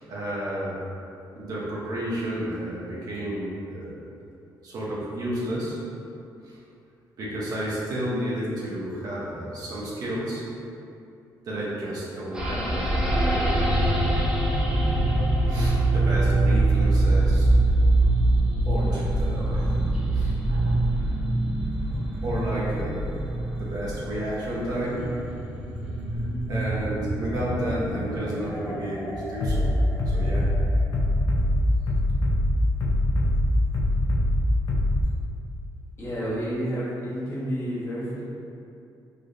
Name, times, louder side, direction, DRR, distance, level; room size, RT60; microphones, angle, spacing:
voice 1, 0.1-0.8 1.3-4.0 4.6-5.8 6.4-6.6 7.2-10.4 11.4-14.2 15.5-17.5 18.7-20.8 21.9-23.2 23.6-25.1 26.5-29.7 30.1-30.5, equal, 55° right, -7 dB, 0.7 m, -31 dB
sound 1, 12.3-31.0, right 2 dB, 10° right, 0.5 m, -24 dB
Bass drum, 29.4-35.0, left 1 dB, 60° left, 0.5 m, -22 dB
voice 2, 36.0-38.2, equal, 35° left, -9 dB, 0.9 m, -30 dB
3.3 x 2.7 x 2.5 m, 2.7 s
cardioid pair, 135°, 8 cm